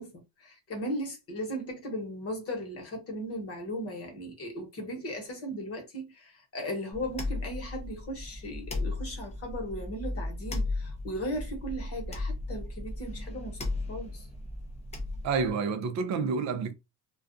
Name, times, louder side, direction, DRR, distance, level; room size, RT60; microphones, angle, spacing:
voice 1, 0.0-14.3, equal, 35° left, 1.1 m, -37 dB
sound 1, 6.9-15.5, left 2 dB, 15° left, 0.6 m, -36 dB
voice 2, 15.2-16.7, right 5 dB, 45° right, 0.6 m, -29 dB
2.3 x 2.3 x 2.5 m
cardioid pair, 125°, 39 cm